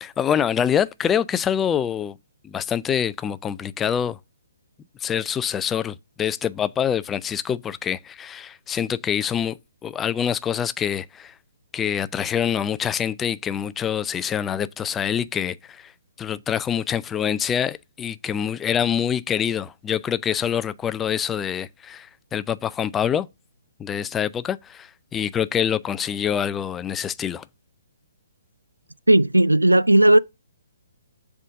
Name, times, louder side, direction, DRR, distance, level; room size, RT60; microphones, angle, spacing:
voice 1, 0.0-2.2 2.4-4.2 5.0-9.6 9.8-11.3 11.7-15.9 16.2-23.3 23.8-27.4, left 8 dB, 15° left, 0.3 m, -25 dB
voice 2, 29.1-30.2, right 1 dB, 85° right, 0.4 m, -15 dB
7.3 x 3.7 x 6.5 m
figure-of-eight pair, 130°, 0 cm